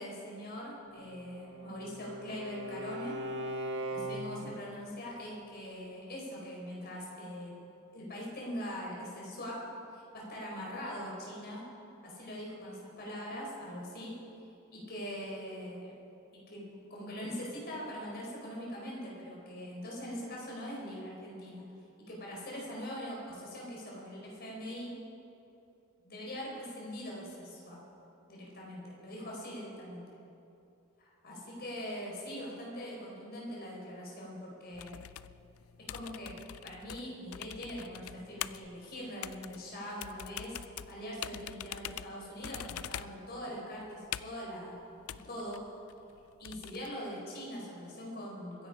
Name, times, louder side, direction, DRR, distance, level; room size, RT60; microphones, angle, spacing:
voice 1, 0.0-3.2 3.9-7.5 7.9-9.6 9.9-11.6 12.0-14.1 14.7-15.9 16.5-21.6 22.1-24.9 26.0-27.8 28.3-30.0 31.2-35.0 35.9-36.3 36.6-40.6 40.9-44.8 45.1-45.6 46.4-48.7, equal, 50° left, -3 dB, 4.6 m, -42 dB
Bowed string instrument, 1.0-4.6, right 1 dB, 60° right, 1.7 m, -40 dB
sound 1, 34.7-46.9, left 11 dB, 90° left, 0.4 m, -44 dB
23.0 x 11.0 x 5.0 m, 2.7 s
head